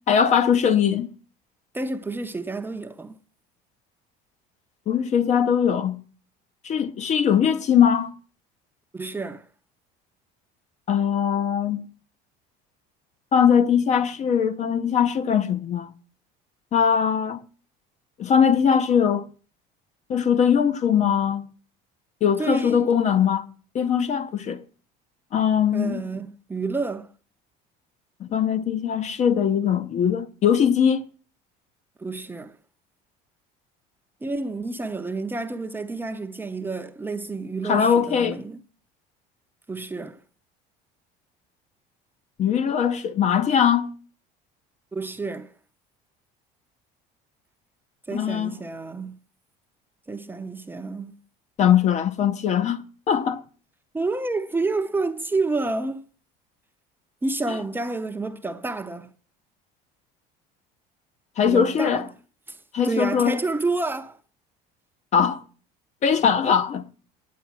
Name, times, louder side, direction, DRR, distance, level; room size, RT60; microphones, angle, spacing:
voice 1, 0.1-1.1 4.9-5.9 6.6-8.1 10.9-11.8 13.3-15.9 16.7-17.4 18.2-19.3 20.1-21.5 22.2-23.5 23.7-24.6 25.3-26.0 28.2-31.0 37.6-38.4 42.4-43.9 48.1-48.5 51.6-52.8 53.1-53.4 57.5-57.6 61.4-62.1 62.7-63.4 65.1-65.4 66.0-66.8, left 8 dB, 40° left, 0.8 m, -21 dB
voice 2, 1.7-3.2 8.9-9.5 22.4-22.9 25.7-27.1 32.0-32.6 34.2-38.6 39.7-40.2 44.9-45.5 48.1-49.2 50.1-51.1 53.9-56.0 57.2-59.1 61.4-62.0 62.5-62.6 62.8-64.2, right 3 dB, 10° right, 0.6 m, -29 dB
9.4 x 8.3 x 6.0 m
cardioid pair, 135°, 18 cm